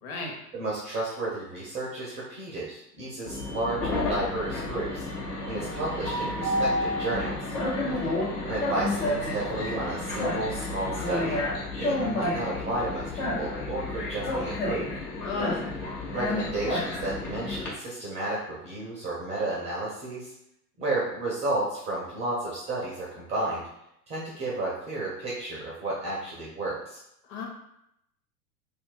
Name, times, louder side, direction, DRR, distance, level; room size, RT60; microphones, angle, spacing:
voice 1, 0.0-0.3 7.8-8.2 15.2-15.7 27.3-27.5, left 3 dB, 35° left, 0 dB, 0.8 m, -34 dB
voice 2, 0.5-5.1 5.4-7.5 8.5-11.4 11.8-14.9 16.1-20.3 20.8-23.6 24.1-27.0, right 2 dB, 15° right, -6 dB, 0.4 m, -32 dB
Train, 3.3-17.7, left 2 dB, 75° left, 1.0 m, -30 dB
2.4 x 2.1 x 3.7 m, 0.79 s
figure-of-eight pair, 85°, 46 cm